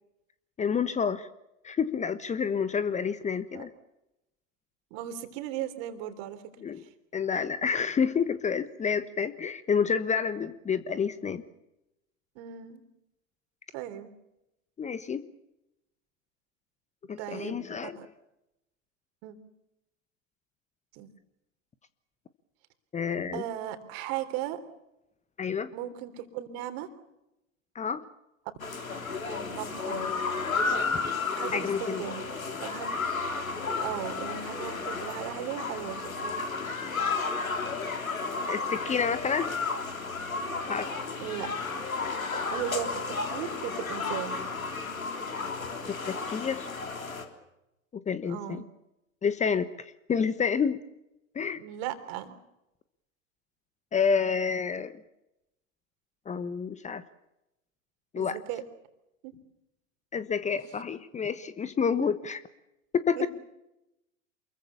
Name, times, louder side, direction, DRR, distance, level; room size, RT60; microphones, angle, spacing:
voice 1, 0.6-1.3 1.6-3.7 6.6-6.8 7.1-11.4 14.8-15.2 17.1-17.9 22.9-23.4 25.4-25.7 27.7-28.0 31.5-32.0 38.5-39.5 40.7-40.9 46.1-46.7 48.1-48.6 49.2-50.8 51.3-51.6 53.9-54.9 56.3-57.0 58.1-58.4 60.1-62.4 62.9-63.3, left 6 dB, 15° left, 13 dB, 1.1 m, -29 dB
voice 2, 4.9-6.4 12.4-12.8 13.7-14.1 17.2-17.7 18.0-18.1 19.2-19.3 20.9-21.1 23.3-24.6 25.7-26.9 29.2-30.1 31.3-32.2 32.6-32.9 33.8-36.3 41.2-41.5 42.5-44.4 48.3-48.7 51.6-52.4 58.2-58.6 59.2-59.4 62.0-62.1 63.2-63.3, right 11 dB, 50° right, 9 dB, 3.7 m, -37 dB
sound 1, 28.6-47.2, left 4 dB, 85° left, 3.5 m, -33 dB
28.5 x 22.5 x 7.2 m, 0.90 s
figure-of-eight pair, 95°, 40 cm